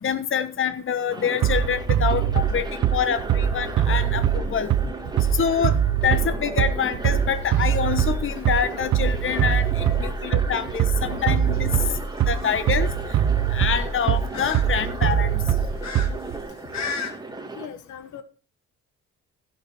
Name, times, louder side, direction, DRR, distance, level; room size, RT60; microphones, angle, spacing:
voice 1, 0.0-4.7 5.3-5.8 6.0-11.7 12.3-12.9 13.5-15.4, left 7 dB, 45° left, 1.1 m, -26 dB
sound 1, 1.1-17.7, right 3 dB, 15° right, 1.9 m, -36 dB
Bass drum, 1.4-16.4, right 9 dB, 70° right, 1.1 m, -22 dB
sound 2, 7.3-17.1, left 6 dB, 60° left, 2.4 m, -39 dB
voice 2, 10.0-10.5 17.5-18.2, left 8 dB, 75° left, 1.6 m, -40 dB
15.5 x 5.9 x 4.7 m
cardioid pair, 90°, 30 cm